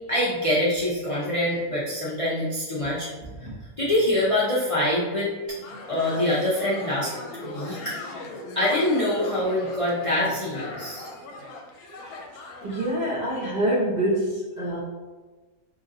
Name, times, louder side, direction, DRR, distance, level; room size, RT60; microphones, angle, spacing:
voice 1, 0.1-3.1 3.4-5.5 5.9-7.1 7.4-8.0 8.6-11.1, left 1 dB, 50° left, -7 dB, 0.4 m, -25 dB
voice 2, 3.2-3.5 12.3-14.8, right 1 dB, 40° right, -6 dB, 0.7 m, -26 dB
sound 1, 5.5-13.0, left 2 dB, 80° left, 1.1 m, -38 dB
3.1 x 2.6 x 3.8 m, 1.3 s
omnidirectional pair, 1.5 m